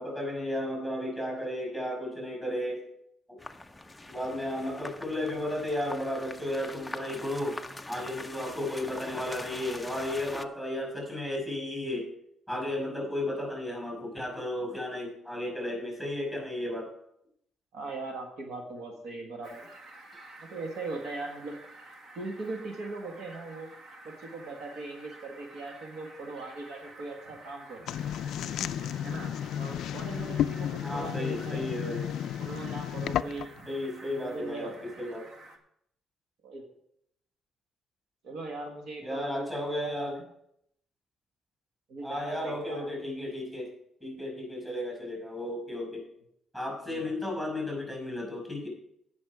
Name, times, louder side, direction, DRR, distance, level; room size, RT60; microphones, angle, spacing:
voice 1, 0.0-2.8 3.3-3.4 4.1-7.6 7.9-12.1 12.5-16.9 30.8-32.1 33.7-35.3 39.0-40.2 42.0-43.7 44.0-46.1 46.5-48.7, left 1 dB, 10° right, 1 dB, 5.7 m, -34 dB
sound 1, 3.4-10.5, left 2 dB, 5° left, 0.5 m, -43 dB
voice 2, 17.7-19.7 20.4-21.6 22.1-23.7 24.0-27.9 29.0-31.6 32.4-33.5 34.1-34.9 36.4-36.6 38.2-39.5 39.8-40.2 41.9-42.9 46.8-47.1, right 3 dB, 60° right, 2 dB, 1.5 m, -40 dB
Fowl, 19.4-35.6, right 2 dB, 45° right, 1.6 m, -50 dB
sound 2, 27.9-33.6, left 10 dB, 65° left, 0.3 m, -33 dB
17.0 x 6.3 x 4.8 m, 0.74 s
cardioid pair, 165°, 0 cm